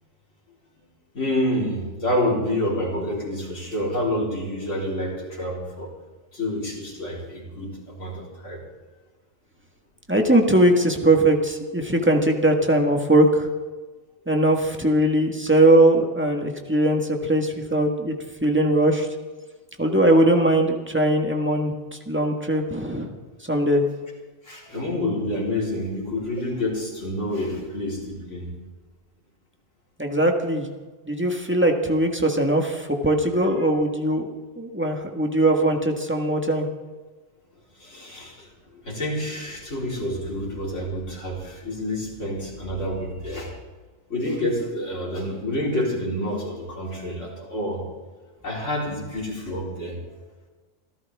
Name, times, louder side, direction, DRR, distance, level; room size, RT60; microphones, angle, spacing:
voice 1, 1.1-5.9 6.3-8.6 24.4-28.5 33.6-33.7 37.8-43.5 44.1-47.8 48.4-50.0, left 1 dB, 65° left, -5 dB, 4.5 m, -28 dB
voice 2, 10.1-13.5 14.3-18.1 18.4-19.1 19.8-21.7 22.1-23.1 23.5-23.8 30.0-30.7 31.1-34.3 34.6-36.7, right 1 dB, 10° right, 3 dB, 1.6 m, -20 dB
25.5 x 14.5 x 3.6 m, 1.3 s
omnidirectional pair, 1.3 m